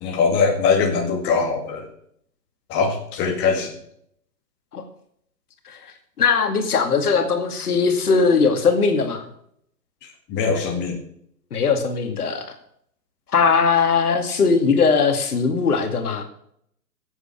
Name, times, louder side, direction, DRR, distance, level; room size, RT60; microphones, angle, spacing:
voice 1, 0.0-1.9 2.7-3.7 10.3-11.0, left 5 dB, 20° left, 2 dB, 2.1 m, -21 dB
voice 2, 6.2-9.2 11.5-12.4 13.3-16.2, left 5 dB, 60° left, 6 dB, 2.5 m, -19 dB
11.0 x 8.5 x 6.8 m, 0.68 s
hypercardioid pair, 140°, 50 cm